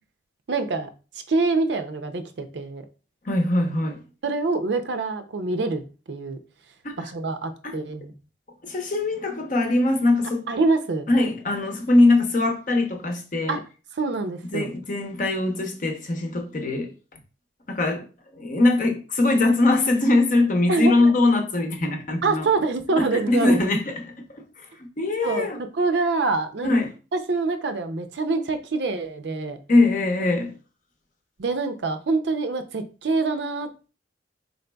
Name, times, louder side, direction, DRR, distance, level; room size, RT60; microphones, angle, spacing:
voice 1, 0.5-0.9 1.3-2.8 4.2-6.4 7.0-8.1 10.2-11.1 13.5-13.6 13.9-14.7 20.7-20.9 22.2-23.6 25.2-25.5 25.7-26.8 27.3-29.6 31.4-33.9, right 3 dB, 65° right, 0.5 m, -25 dB
voice 2, 3.2-4.0 6.8-7.1 7.6-7.8 8.6-10.5 11.1-13.6 14.5-17.2 17.7-18.0 18.3-22.5 23.0-25.6 26.6-26.9 29.7-30.5, left 2 dB, 45° left, 0.8 m, -22 dB
4.0 x 3.9 x 2.2 m
head